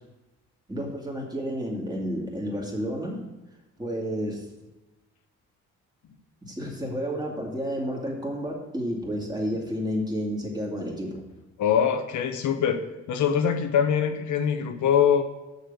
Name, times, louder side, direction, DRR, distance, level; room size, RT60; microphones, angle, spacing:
voice 1, 0.7-3.2 3.8-4.5 6.4-11.2, equal, 15° right, -1 dB, 2.5 m, -31 dB
voice 2, 11.6-12.8 13.1-15.2, left 8 dB, 75° left, 7 dB, 1.0 m, -23 dB
6.7 x 6.6 x 6.8 m, 1.1 s
cardioid pair, 90°, 30 cm